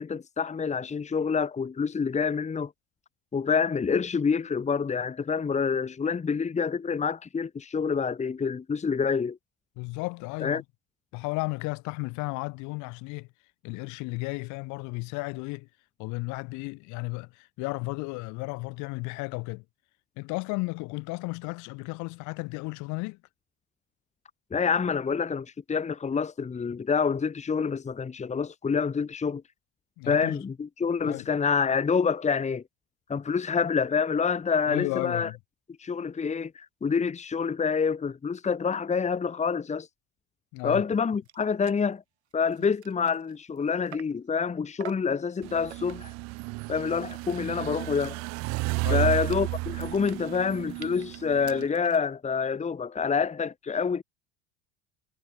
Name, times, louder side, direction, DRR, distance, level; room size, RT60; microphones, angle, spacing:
voice 1, 0.0-2.7 3.3-9.4 10.4-10.6 24.5-29.4 30.1-32.6 33.1-35.3 35.8-39.9 40.6-42.0 42.3-46.1 46.7-48.1 48.9-54.0, left 6 dB, 20° left, 1.6 m, -27 dB
voice 2, 9.8-10.6 11.1-13.3 13.6-15.7 16.0-19.6 20.2-23.2 30.0-30.4 31.0-31.3 34.7-35.4 40.5-40.8 48.8-49.1, left 26 dB, 60° left, 3.2 m, -34 dB
sound 1, 41.0-41.1 41.2-41.4 41.6-41.9 42.3-44.3 44.8-45.2 45.7-46.2 46.6-52.1, right 10 dB, 90° right, 7.7 m, -49 dB
sound 2, 45.4-51.7, right 25 dB, 55° right, 0.9 m, -33 dB
hypercardioid pair, 80°, 32 cm